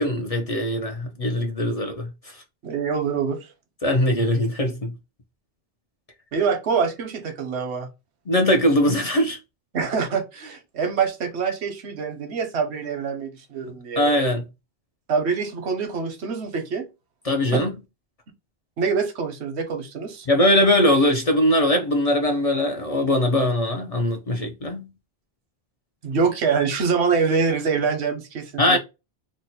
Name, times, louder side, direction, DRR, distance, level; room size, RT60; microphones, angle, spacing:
voice 1, 0.0-2.4 3.8-4.9 8.3-9.4 14.0-14.4 17.2-17.7 20.3-24.9 28.6-28.8, left 1 dB, 45° left, 0.5 m, -21 dB
voice 2, 2.6-3.5 6.3-7.9 9.7-14.1 15.1-16.9 17.5-17.6 18.8-20.3 26.0-28.8, right 5 dB, 90° right, 1.0 m, -25 dB
3.0 x 2.1 x 4.1 m
omnidirectional pair, 1.1 m